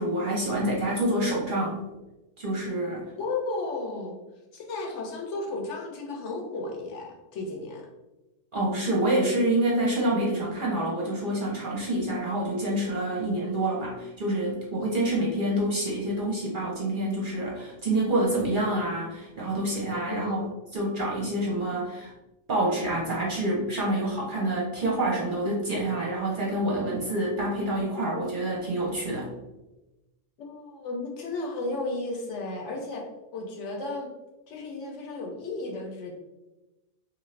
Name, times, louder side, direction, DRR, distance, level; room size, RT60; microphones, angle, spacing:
voice 1, 0.0-1.9 2.4-3.1 8.5-22.1 22.5-29.3, right 1 dB, 50° right, -4 dB, 0.7 m, -27 dB
voice 2, 3.2-4.2 4.5-7.9 20.1-20.4 30.4-33.1 33.3-34.1 34.5-36.1, left 2 dB, 70° left, 1 dB, 0.9 m, -34 dB
2.7 x 2.5 x 3.1 m, 1.0 s
omnidirectional pair, 1.3 m